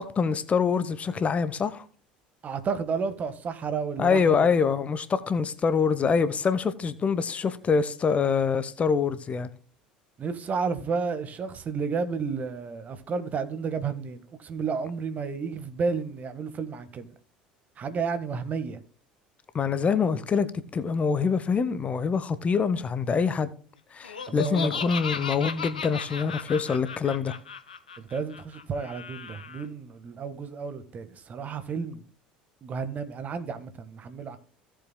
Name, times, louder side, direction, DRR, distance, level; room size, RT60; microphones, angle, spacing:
voice 1, 0.0-1.9 4.0-9.5 19.5-23.5 23.9-27.4, left 5 dB, 30° left, 1.0 m, -25 dB
voice 2, 2.4-4.5 10.2-17.1 17.8-18.8 24.3-24.9 28.0-32.0 32.6-34.4, right 5 dB, 35° right, 1.4 m, -32 dB
Laughter, 24.0-29.6, left 6 dB, 85° left, 0.7 m, -36 dB
17.0 x 7.6 x 2.2 m
figure-of-eight pair, 65°, 4 cm